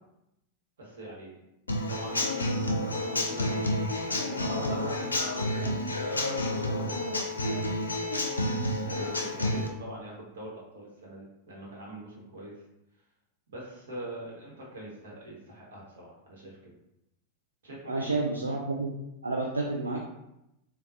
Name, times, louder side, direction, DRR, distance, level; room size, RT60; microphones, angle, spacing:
voice 1, 0.8-1.4 1.9-2.4 2.8-4.0 4.3-6.3 6.6-8.3 8.8-12.5 13.5-16.7 17.6-18.2, right 1 dB, 65° right, -3 dB, 1.1 m, -44 dB
Human voice / Acoustic guitar / Drum, 1.7-9.7, left 1 dB, 80° left, 0.5 m, -29 dB
voice 2, 17.9-18.9 19.2-20.0, right 3 dB, 80° right, 0 dB, 0.3 m, -30 dB
3.7 x 2.2 x 2.6 m, 0.86 s
figure-of-eight pair, 90°, 0 cm